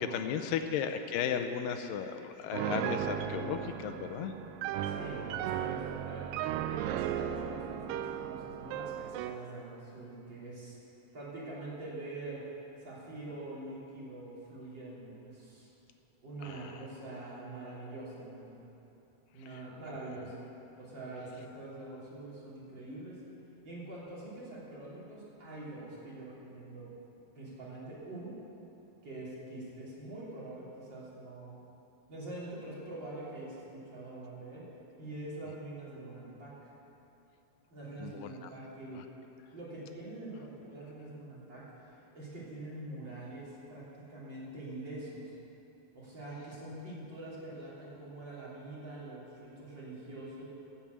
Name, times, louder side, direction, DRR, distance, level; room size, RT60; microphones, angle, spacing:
voice 1, 0.0-4.3 16.4-16.7 19.5-19.6 38.0-38.5 39.0-39.1, left 8 dB, 80° left, 7 dB, 2.0 m, -35 dB
Piano, 2.5-9.5, right 10 dB, 85° right, 2.0 m, -36 dB
voice 2, 4.8-6.4 6.6-10.8 11.1-12.5 12.8-15.7 16.2-18.6 19.3-20.4 20.8-23.2 23.6-26.9 27.4-28.4 29.0-31.5 32.1-34.7 35.0-36.7 37.7-39.0 39.5-41.7 42.1-45.3 45.9-50.4, right 2 dB, 30° right, -8 dB, 3.4 m, -44 dB
13.5 x 7.3 x 8.2 m, 3.0 s
omnidirectional pair, 4.5 m